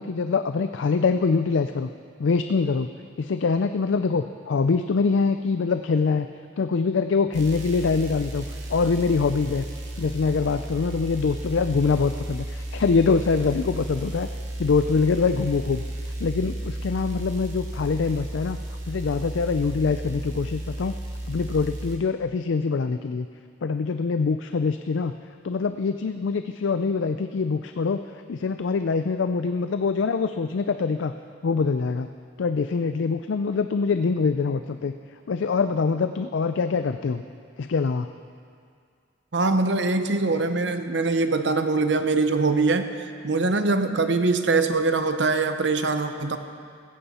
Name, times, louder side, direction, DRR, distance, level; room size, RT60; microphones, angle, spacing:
voice 1, 0.0-1.9 2.2-2.9 3.2-6.3 6.6-8.4 8.7-9.6 10.0-14.3 14.6-15.8 16.2-18.6 18.9-20.9 21.3-23.3 23.6-25.1 25.4-28.0 28.3-31.1 31.4-32.1 32.4-34.9 35.3-37.2 37.6-38.1, left 4 dB, 80° left, 9 dB, 0.4 m, -24 dB
sound 1, 7.3-22.0, right 1 dB, 85° right, 2.2 m, -34 dB
voice 2, 39.3-42.9 43.2-46.4, right 3 dB, 65° right, 8 dB, 0.8 m, -23 dB
16.5 x 14.5 x 4.3 m, 2.3 s
head